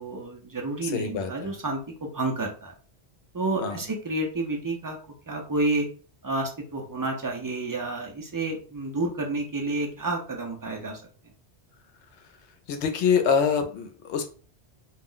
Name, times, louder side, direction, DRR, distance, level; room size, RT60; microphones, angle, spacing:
voice 1, 0.0-2.7 3.3-5.0 5.3-5.9 6.2-11.0, right 2 dB, 30° right, 1 dB, 0.3 m, -30 dB
voice 2, 0.8-1.5 3.6-3.8 12.7-14.2, left 6 dB, 90° left, 6 dB, 0.9 m, -25 dB
2.4 x 2.0 x 3.7 m, 0.39 s
omnidirectional pair, 1.1 m